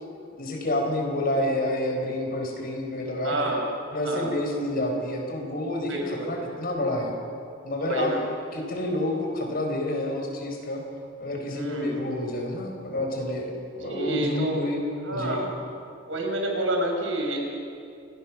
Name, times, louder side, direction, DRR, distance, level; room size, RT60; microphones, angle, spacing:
voice 1, 0.4-3.3 3.9-7.1 7.6-8.1 8.5-10.8 11.2-14.8 15.1-15.4, left 1 dB, 50° left, 2 dB, 4.7 m, -29 dB
voice 2, 3.2-3.7 4.0-4.3 5.8-6.3 7.8-8.2 11.5-12.0 13.8-14.6 15.0-15.5 16.0-17.4, right 1 dB, 85° right, 1 dB, 5.6 m, -29 dB
28.0 x 19.5 x 6.2 m, 2.5 s
head